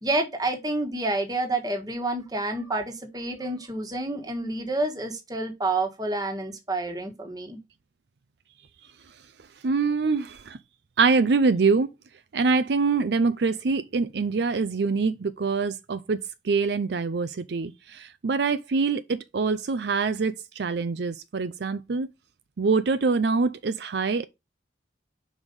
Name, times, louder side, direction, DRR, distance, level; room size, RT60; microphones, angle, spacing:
voice 1, 0.0-7.6, right 2 dB, 20° right, 1.5 m, -29 dB
voice 2, 9.6-10.6 11.0-11.9 12.3-16.2 16.4-22.1 22.6-24.2, right 4 dB, 70° right, 0.5 m, -24 dB
5.4 x 4.9 x 5.3 m
head